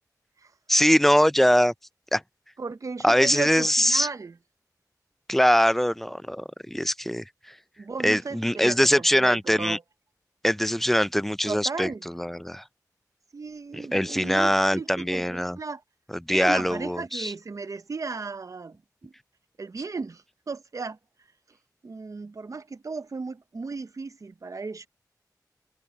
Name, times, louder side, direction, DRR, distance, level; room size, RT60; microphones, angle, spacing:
voice 1, 0.7-1.7 2.1-2.2 3.0-4.1 5.3-7.2 8.0-9.8 10.4-12.6 13.7-15.6 16.3-17.3, equal, 5° left, 0.4 m, -22 dB
voice 2, 2.6-4.4 7.8-9.8 11.5-12.0 13.3-15.8 16.3-19.1 19.6-21.0 21.8-24.9, right 4 dB, 55° right, 0.8 m, -35 dB
wide cardioid pair, 65°, 7 cm